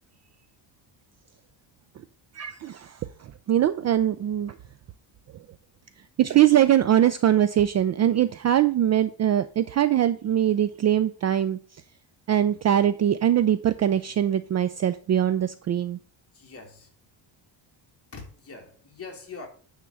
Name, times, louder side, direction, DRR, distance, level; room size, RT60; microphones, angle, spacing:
voice 1, 2.3-4.6 6.2-11.6 12.3-16.0, right 11 dB, 40° right, 0.4 m, -22 dB
voice 2, 16.3-16.9 18.1-19.5, left 4 dB, 30° left, 2.7 m, -42 dB
9.3 x 3.7 x 6.8 m
cardioid pair, 145°, 45 cm